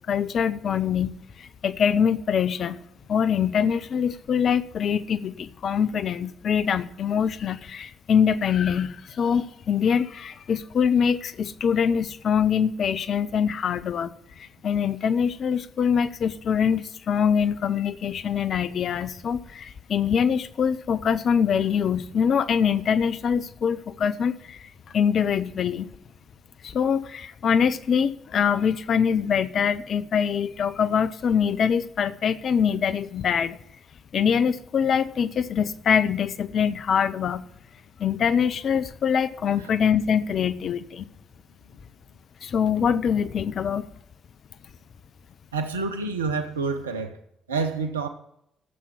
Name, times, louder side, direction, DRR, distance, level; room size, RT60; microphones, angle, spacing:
voice 1, 0.1-2.8 3.1-14.1 14.4-25.9 26.6-33.6 34.1-37.4 38.0-41.1 42.4-43.9, left 7 dB, 50° left, 0.7 m, -24 dB
voice 2, 45.5-47.2 47.5-48.1, right 4 dB, 80° right, 0.9 m, -28 dB
12.5 x 7.4 x 7.2 m
figure-of-eight pair, 40°, 0 cm